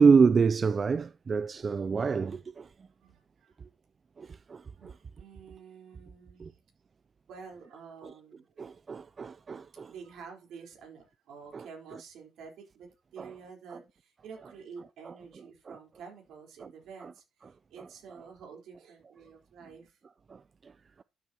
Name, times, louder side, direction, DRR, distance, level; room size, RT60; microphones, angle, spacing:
voice 1, 0.0-2.7 4.2-4.6 6.4-6.5 8.0-8.1 8.6-9.9 11.5-11.7 13.2-13.3 15.1-15.2 15.7-15.8 16.6-16.7 17.0-17.1 20.3-20.4, right 5 dB, 40° right, 0.4 m, -26 dB
voice 2, 3.0-3.6 4.8-6.6 7.3-8.6 9.7-20.0, right 6 dB, 80° right, 3.9 m, -49 dB
12.5 x 7.3 x 2.8 m
cardioid pair, 90°, 0 cm